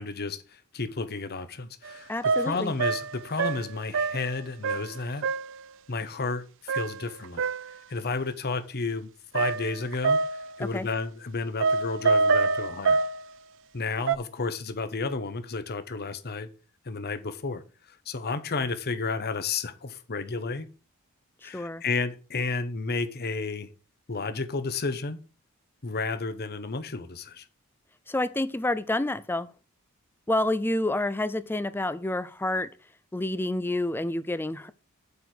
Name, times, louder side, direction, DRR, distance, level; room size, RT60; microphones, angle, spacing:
voice 1, 0.0-5.3 5.9-7.4 7.9-13.0 13.7-16.5 16.8-17.6 17.9-20.7 21.4-23.7 24.1-25.2 25.8-27.5, left 4 dB, 45° left, 1.0 m, -32 dB
sound 1, 1.9-2.0 2.2-4.3 4.6-5.0 5.2-5.6 6.7-7.7 9.4-10.6 11.6-13.2 14.1-14.2, right 4 dB, 60° right, 0.4 m, -26 dB
voice 2, 2.1-2.7 10.6-10.9 21.4-21.8 28.1-29.5 30.3-32.7 33.1-34.7, left 1 dB, 10° left, 0.5 m, -28 dB
8.0 x 4.7 x 6.7 m
head